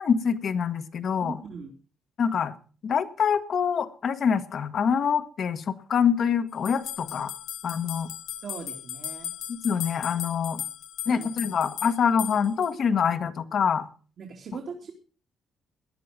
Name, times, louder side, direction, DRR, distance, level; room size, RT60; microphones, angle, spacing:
voice 1, 0.0-1.4 2.2-2.5 2.8-7.3 7.6-8.1 9.5-10.6 11.0-13.9, left 7 dB, 60° left, 8 dB, 1.6 m, -25 dB
voice 2, 1.2-1.7 8.4-9.3 11.1-11.3 14.2-14.9, right 5 dB, 60° right, 1 dB, 2.9 m, -40 dB
sound 1, 6.7-12.7, left 11 dB, 80° left, 0.9 m, -37 dB
18.0 x 10.5 x 5.2 m, 0.39 s
cardioid pair, 90°, 0 cm